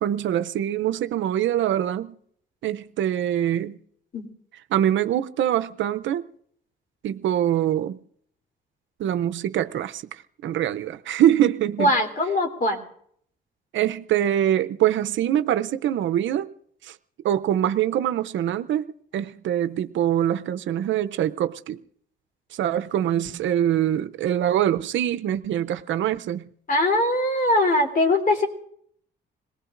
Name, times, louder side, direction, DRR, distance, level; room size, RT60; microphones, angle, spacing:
voice 1, 0.0-2.2 2.6-3.8 4.7-6.2 7.0-8.0 9.0-11.9 13.7-16.5 16.8-16.9 17.2-21.8 22.5-26.5, right 11 dB, 70° right, 0.6 m, -24 dB
voice 2, 11.8-12.8 26.7-28.5, left 1 dB, 45° left, 3.3 m, -21 dB
26.5 x 19.0 x 2.6 m
cardioid pair, 90°, 20 cm